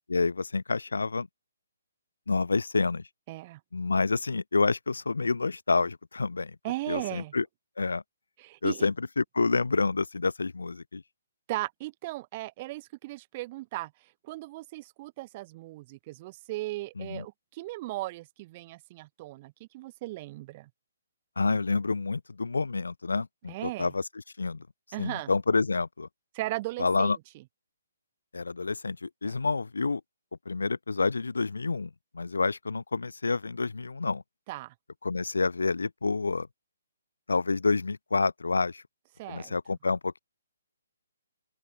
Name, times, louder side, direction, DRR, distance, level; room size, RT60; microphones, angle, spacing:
voice 1, 0.1-1.3 2.3-3.1 3.7-6.6 6.9-7.4 7.8-8.0 8.6-11.0 17.0-17.2 21.4-24.0 24.4-24.7 25.0-26.1 26.8-27.2 28.3-30.0 30.5-34.2 35.0-36.5 37.3-38.8 39.3-40.2, left 4 dB, 75° left, 0.3 m, -28 dB
voice 2, 3.3-3.6 6.6-7.3 8.4-8.9 11.5-20.7 23.5-23.9 24.9-25.3 26.3-27.1 29.2-29.3 34.5-34.7 39.2-39.6, right 19 dB, 35° right, 3.5 m, -37 dB
open air
figure-of-eight pair, 135°, 0 cm